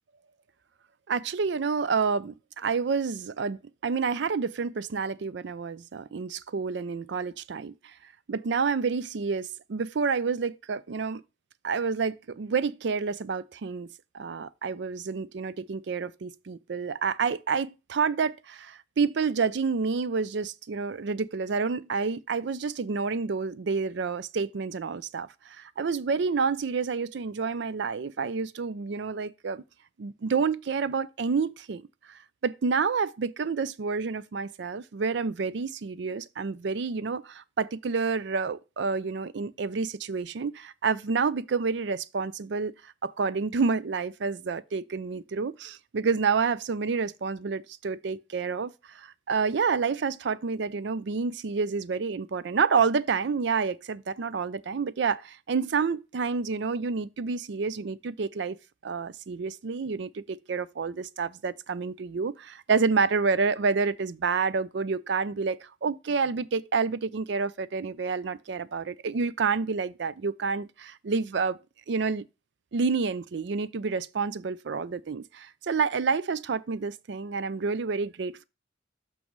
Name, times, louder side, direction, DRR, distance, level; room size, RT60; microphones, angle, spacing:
voice 1, 1.1-7.9 8.3-11.2 11.6-13.9 14.1-29.6 30.0-31.8 32.1-58.6 58.8-71.6 71.9-72.2 72.7-78.4, right 5 dB, 65° right, 0.4 m, -29 dB
7.2 x 6.0 x 3.1 m
head